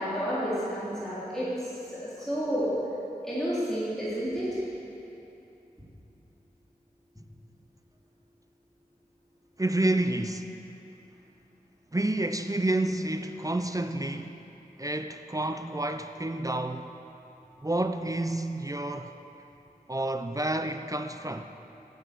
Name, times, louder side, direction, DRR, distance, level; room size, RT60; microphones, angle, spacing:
voice 1, 0.0-2.8 3.2-4.6, equal, 5° left, 3.5 m, -30 dB
voice 2, 9.6-10.5 11.9-14.4 14.8-16.9 17.6-19.1 19.9-21.4, right 1 dB, 20° right, 0.5 m, -29 dB
12.0 x 8.0 x 8.2 m
wide cardioid pair, 55°, 16 cm